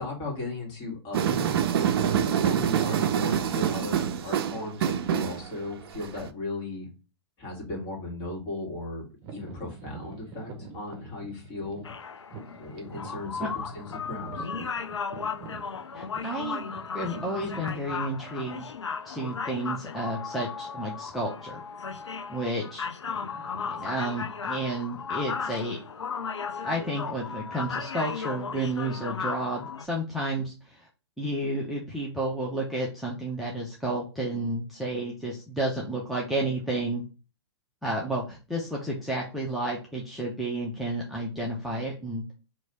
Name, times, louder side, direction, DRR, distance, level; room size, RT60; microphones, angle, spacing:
voice 1, 0.0-1.6 1.9-6.9 7.4-11.9 12.6-14.5, left 2 dB, 35° left, -1 dB, 2.0 m, -36 dB
sound 1, 1.1-6.3, right 9 dB, 55° right, 0.4 m, -26 dB
sound 2, 9.2-19.0 19.6-19.7 20.4-20.6 20.9-21.1 21.8-22.3 22.6-26.0, right 5 dB, 30° right, 0.9 m, -46 dB
sound 3, 11.8-29.9, left 6 dB, 85° left, 0.4 m, -35 dB
voice 2, 15.9-16.7 16.9-18.7 19.0-21.6 22.3-22.9 23.8-25.8 26.6-30.9 31.2-37.0 37.8-42.2, right 1 dB, ahead, -4 dB, 0.8 m, -31 dB
3.2 x 2.9 x 4.0 m, 0.32 s
figure-of-eight pair, 110°, 14 cm